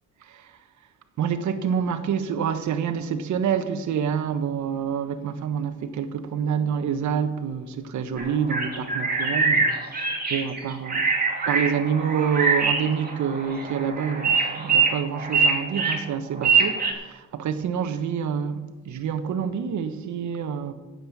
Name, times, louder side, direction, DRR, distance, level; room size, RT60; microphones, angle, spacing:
voice 1, 1.2-11.1 11.4-20.7, right 7 dB, 70° right, 1.3 m, -27 dB
sound 1, 8.2-16.9, right 4 dB, 30° right, 2.9 m, -24 dB
9.6 x 7.9 x 9.3 m
cardioid pair, 90°, 30 cm